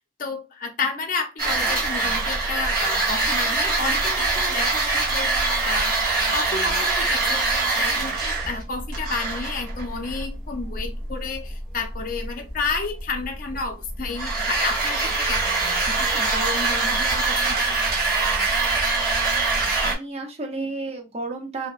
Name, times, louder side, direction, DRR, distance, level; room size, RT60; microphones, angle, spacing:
voice 1, 0.0-6.0 6.3-17.9, left 4 dB, 50° left, 0.6 m, -31 dB
sound 1, 1.4-19.9, right 3 dB, 55° right, 1.1 m, -24 dB
voice 2, 19.6-21.7, right 3 dB, 40° right, 0.6 m, -32 dB
2.7 x 2.1 x 2.4 m
head